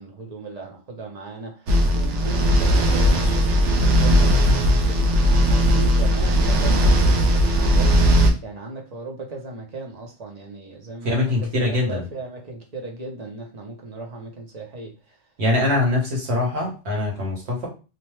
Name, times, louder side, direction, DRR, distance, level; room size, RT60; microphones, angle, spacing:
voice 1, 0.0-15.2, right 3 dB, 40° right, 0.7 m, -37 dB
sound 1, 1.7-8.3, equal, 85° right, 0.9 m, -18 dB
voice 2, 11.0-12.1 15.4-17.7, left 2 dB, 65° right, 1.3 m, -23 dB
2.8 x 2.1 x 3.1 m
omnidirectional pair, 1.2 m